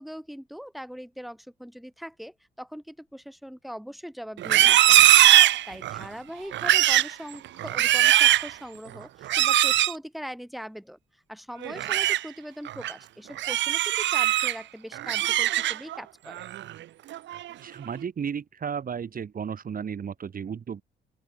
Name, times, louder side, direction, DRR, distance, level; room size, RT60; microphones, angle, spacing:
voice 1, 0.0-5.1 5.7-11.0 11.3-16.5, equal, ahead, 3.4 m, -41 dB
Livestock farm animals working animals, 4.4-6.1 6.5-7.1 7.6-8.5 9.3-9.9 11.6-12.2 12.7-12.9 13.4-14.5 14.9-16.0 16.4-16.7 17.1-17.5, right 13 dB, 65° right, 0.6 m, -20 dB
voice 2, 17.6-20.8, right 7 dB, 45° right, 2.0 m, -33 dB
open air
cardioid pair, 90°, 20 cm